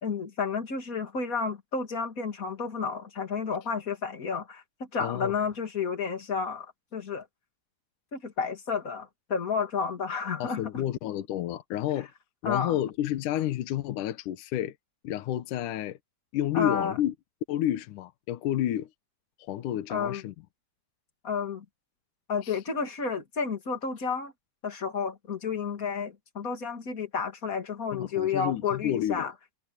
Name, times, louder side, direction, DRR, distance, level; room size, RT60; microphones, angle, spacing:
voice 1, 0.0-7.3 8.1-10.6 12.4-12.8 16.5-17.0 19.9-20.2 21.2-21.6 22.3-24.3 24.6-29.3, left 5 dB, 25° left, 2.2 m, -31 dB
voice 2, 5.0-5.3 10.4-12.1 12.4-14.7 15.0-16.0 16.3-17.1 17.5-18.9 19.4-20.3 22.4-22.6 27.9-29.3, left 12 dB, 70° left, 2.1 m, -30 dB
omnidirectional pair, 4.7 m